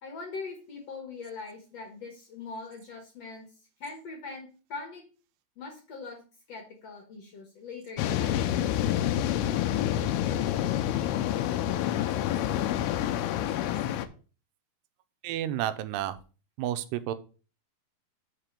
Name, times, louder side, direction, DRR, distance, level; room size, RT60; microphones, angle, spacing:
voice 1, 0.0-3.5 3.8-5.0 5.6-6.2 6.5-8.5, left 4 dB, 55° left, 1 dB, 2.1 m, -41 dB
sound 1, 8.0-14.1, left 11 dB, 85° left, 2.6 m, -28 dB
voice 2, 15.2-16.2 16.6-17.1, right 12 dB, 90° right, 11 dB, 2.7 m, -31 dB
5.9 x 4.9 x 6.6 m, 0.36 s
omnidirectional pair, 4.6 m